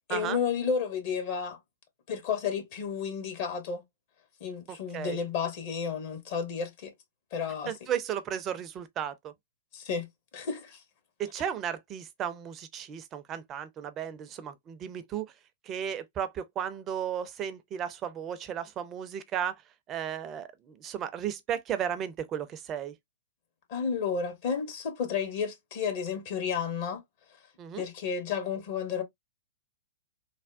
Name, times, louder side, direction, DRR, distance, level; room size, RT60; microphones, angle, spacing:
voice 1, 0.1-1.6 2.1-3.8 4.4-6.9 7.3-7.7 9.7-10.1 10.3-10.8 23.7-27.0 27.8-29.0, left 6 dB, 45° left, 0.8 m, -32 dB
voice 2, 4.7-5.2 7.7-9.3 11.2-15.3 15.7-19.6 19.9-22.9 27.6-27.8, right 9 dB, 25° right, 0.5 m, -34 dB
3.4 x 2.1 x 2.4 m
figure-of-eight pair, 105°, 0 cm